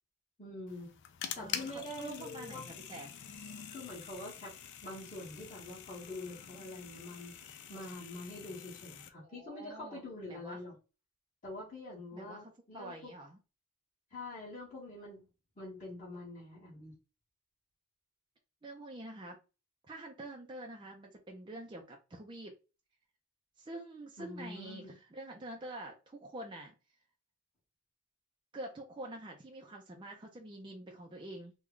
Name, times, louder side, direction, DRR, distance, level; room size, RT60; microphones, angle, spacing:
voice 1, 0.4-0.9 1.3-2.6 3.7-4.5 4.8-10.7 11.4-13.1 14.1-15.3 15.5-16.9 24.2-25.0, left 2 dB, 35° left, -9 dB, 1.5 m, -45 dB
sound 1, 0.7-9.1, left 9 dB, 55° left, 0.4 m, -46 dB
voice 2, 1.4-3.1 9.2-10.0 10.3-10.6 12.1-13.4 18.6-19.4 19.9-22.5 23.6-26.7 28.5-31.5, right 1 dB, 20° right, 1 dB, 0.5 m, -46 dB
3.1 x 2.3 x 3.7 m, 0.30 s
head